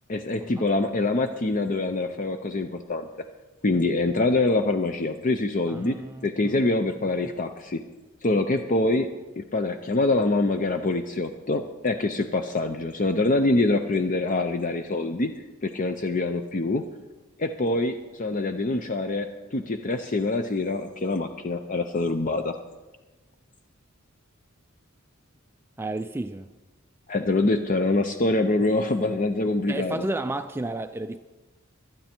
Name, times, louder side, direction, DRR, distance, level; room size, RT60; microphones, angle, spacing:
voice 1, 0.1-3.1 3.6-6.0 6.2-7.8 8.2-9.1 9.4-15.3 15.6-16.8 17.4-22.5 27.1-30.1, left 2 dB, 40° left, 7 dB, 0.6 m, -25 dB
voice 2, 5.7-6.6 25.8-26.5 29.7-31.2, right 2 dB, 10° right, 9 dB, 0.3 m, -32 dB
24.5 x 9.3 x 4.4 m, 1.2 s
head